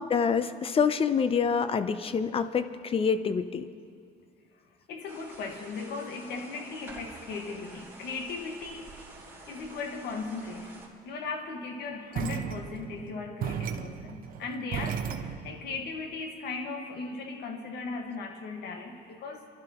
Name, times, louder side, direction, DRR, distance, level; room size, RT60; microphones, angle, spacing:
voice 1, 0.0-3.6, left 6 dB, 35° left, 12 dB, 0.6 m, -26 dB
voice 2, 4.9-9.0 9.5-19.5, left 4 dB, 75° left, 4 dB, 1.6 m, -37 dB
sound 1, 5.1-10.9, right 2 dB, 10° right, 3.1 m, -49 dB
sound 2, 12.1-15.6, right 8 dB, 60° right, 0.9 m, -35 dB
27.5 x 12.0 x 3.0 m, 2.2 s
cardioid pair, 110°, 17 cm